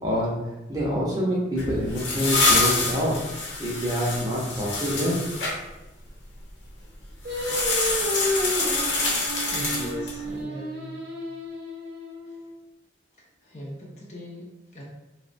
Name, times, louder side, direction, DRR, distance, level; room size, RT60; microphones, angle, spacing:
voice 1, 0.7-3.1 3.6-5.2, equal, 20° right, -5 dB, 0.6 m, -26 dB
sound 1, 1.6-5.5 7.3-10.2, left 3 dB, 85° left, 0.8 m, -26 dB
Singing, 7.2-12.5, equal, 60° right, 0.6 m, -31 dB
voice 2, 9.5-11.1 12.2-12.4 13.2-14.8, left 1 dB, 40° left, -3 dB, 0.5 m, -39 dB
3.5 x 2.1 x 2.5 m, 0.98 s
head